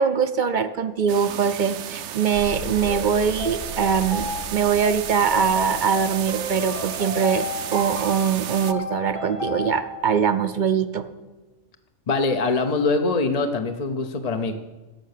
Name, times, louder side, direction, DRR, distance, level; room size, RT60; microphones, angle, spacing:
voice 1, 0.0-7.4 7.7-11.1, right 7 dB, 50° right, 10 dB, 0.6 m, -22 dB
sound 1, 1.1-8.7, right 10 dB, 75° right, 1.0 m, -33 dB
sound 2, 2.3-7.1 7.3-7.4, equal, 65° left, 1.9 m, -39 dB
sound 3, 2.5-10.0, left 2 dB, 85° left, 2.7 m, -33 dB
voice 2, 12.1-14.5, left 3 dB, 40° left, 5 dB, 0.7 m, -23 dB
16.5 x 6.5 x 6.6 m, 1.2 s
omnidirectional pair, 1.3 m